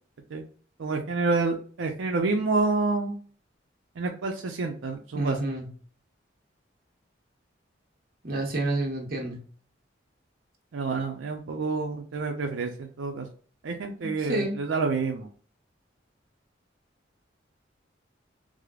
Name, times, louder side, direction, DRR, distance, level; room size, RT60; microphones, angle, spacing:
voice 1, 0.8-3.1 4.0-5.4 10.7-13.3 13.6-15.3, right 3 dB, 90° right, 2 dB, 0.5 m, -28 dB
voice 2, 5.2-5.7 8.2-9.4 14.0-14.5, right 2 dB, 50° right, 0 dB, 1.0 m, -29 dB
4.8 x 2.0 x 2.3 m, 0.44 s
head